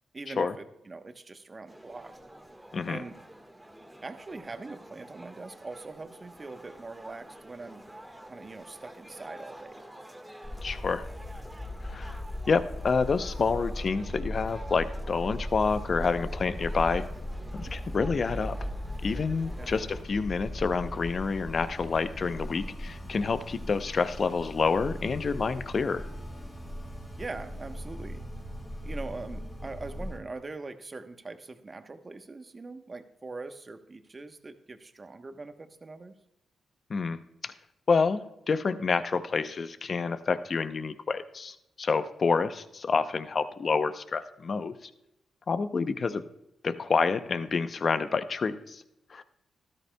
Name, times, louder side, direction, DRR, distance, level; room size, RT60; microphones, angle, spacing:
voice 1, 0.1-2.1 2.9-3.2 4.0-7.9 8.3-9.8 19.6-19.7 27.2-28.3 28.8-36.1, right 3 dB, 35° right, 8 dB, 1.0 m, -42 dB
sound 1, 1.7-20.0, right 1 dB, 10° right, 1.5 m, -49 dB
voice 2, 2.7-3.0 10.6-11.0 11.9-12.2 12.5-17.0 17.5-18.6 19.0-26.0 36.9-37.5 37.9-44.7 45.5-46.2 46.6-48.8 49.1-49.2, left 5 dB, 55° left, 12 dB, 0.6 m, -28 dB
sound 2, 10.4-30.2, left 1 dB, 30° left, 4.1 m, -38 dB
13.0 x 13.0 x 2.3 m, 0.87 s
supercardioid pair, 55°, 0 cm